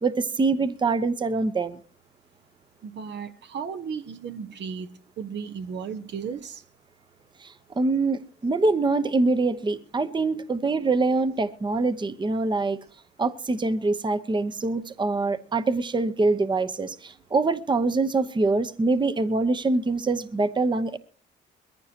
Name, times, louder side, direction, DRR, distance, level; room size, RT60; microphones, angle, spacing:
voice 1, 0.0-1.8 7.4-12.8 13.2-21.0, right 3 dB, 25° right, 0.9 m, -24 dB
voice 2, 2.8-6.6, right 6 dB, 60° right, 1.2 m, -35 dB
21.5 x 15.0 x 2.9 m
cardioid pair, 90°, 20 cm